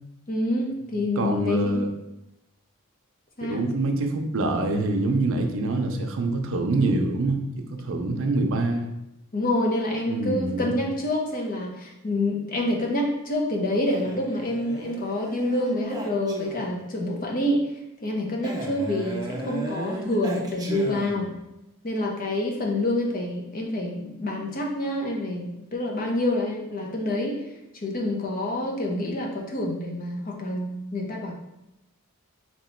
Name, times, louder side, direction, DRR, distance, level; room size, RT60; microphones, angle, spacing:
voice 1, 0.3-1.8 3.4-3.6 9.3-17.6 18.0-21.3 21.8-27.4 27.8-31.3, left 1 dB, 40° left, 0 dB, 0.7 m, -27 dB
voice 2, 1.2-1.9 3.5-8.9 10.1-10.7, right 2 dB, 60° right, 4 dB, 0.5 m, -25 dB
Male speech man speaking, 13.9-16.9 18.4-21.4, equal, 15° right, 0.5 m, -35 dB
3.0 x 3.0 x 4.3 m, 0.89 s
head